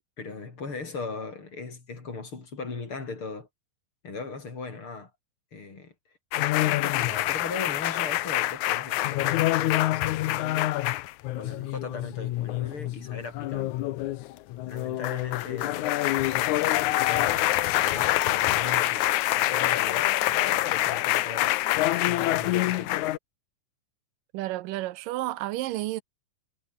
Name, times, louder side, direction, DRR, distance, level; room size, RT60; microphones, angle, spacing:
voice 1, 0.2-3.5 4.0-5.1 5.5-5.9 6.3-10.7 11.4-13.8 14.7-19.1 19.3-21.5 22.1-22.9, left 4 dB, 40° left, 4.5 m, -39 dB
sound 1, 6.3-23.2, left 16 dB, 75° left, 2.0 m, -26 dB
voice 2, 24.3-26.0, right 16 dB, 85° right, 2.4 m, -31 dB
omnidirectional pair, 3.9 m